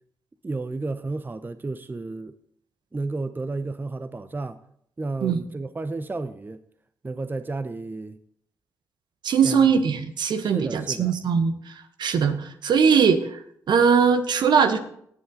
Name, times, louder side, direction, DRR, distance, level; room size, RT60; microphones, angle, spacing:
voice 1, 0.4-2.3 2.9-4.6 5.0-6.6 7.0-8.2 9.4-9.6 10.4-11.1, right 3 dB, 20° right, 0.7 m, -32 dB
voice 2, 9.2-13.4 13.7-14.8, right 6 dB, 60° right, 1.1 m, -21 dB
17.5 x 7.9 x 3.9 m
hypercardioid pair, 40°, 9 cm